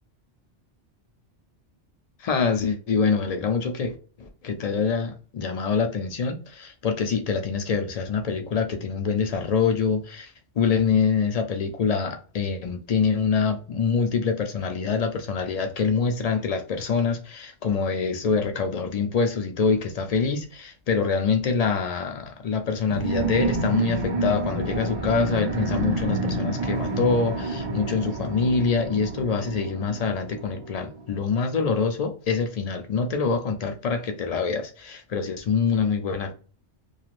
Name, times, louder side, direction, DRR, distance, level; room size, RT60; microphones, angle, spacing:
voice 1, 2.2-36.3, left 5 dB, 70° left, 0.3 m, -25 dB
sound 1, 22.9-31.0, right 2 dB, 40° right, 0.6 m, -29 dB
2.4 x 2.4 x 3.0 m
omnidirectional pair, 1.2 m